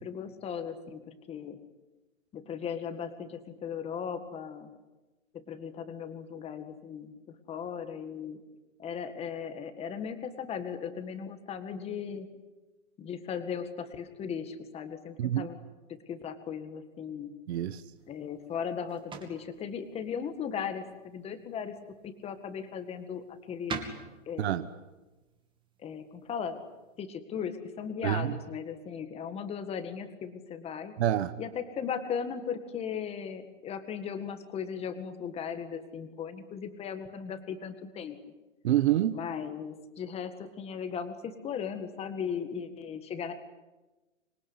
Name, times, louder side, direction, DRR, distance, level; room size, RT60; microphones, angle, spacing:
voice 1, 0.0-1.6 2.3-4.7 5.3-8.4 8.8-12.3 13.0-15.6 15.9-17.4 18.1-21.7 22.0-23.8 24.3-24.7 25.8-26.6 27.0-30.9 31.4-38.2 39.1-43.3, left 7 dB, 15° left, 9 dB, 1.9 m, -37 dB
voice 2, 17.5-17.8 24.4-24.6 28.0-28.3 31.0-31.3 38.6-39.2, right 12 dB, 55° right, 12 dB, 1.2 m, -27 dB
sound 1, 17.9-27.1, right 5 dB, 10° right, 2.5 m, -47 dB
26.5 x 21.5 x 9.8 m, 1.1 s
hypercardioid pair, 150°, 40 cm